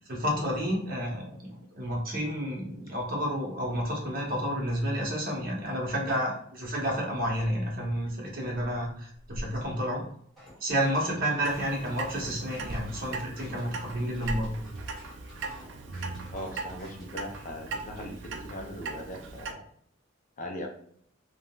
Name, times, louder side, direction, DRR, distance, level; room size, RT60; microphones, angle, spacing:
voice 1, 0.1-10.0 10.6-14.5, equal, 50° right, -2 dB, 0.9 m, -30 dB
sound 1, 9.2-10.0 12.6-13.0 13.9-15.1, equal, 25° right, 0.6 m, -40 dB
sound 2, 10.4-17.2, equal, ahead, 1.3 m, -52 dB
Clock, 11.4-19.5, right 3 dB, 65° right, 0.4 m, -39 dB
voice 2, 16.3-19.6 20.4-20.7, equal, 40° left, 2 dB, 0.5 m, -39 dB
3.7 x 2.1 x 2.3 m, 0.64 s
head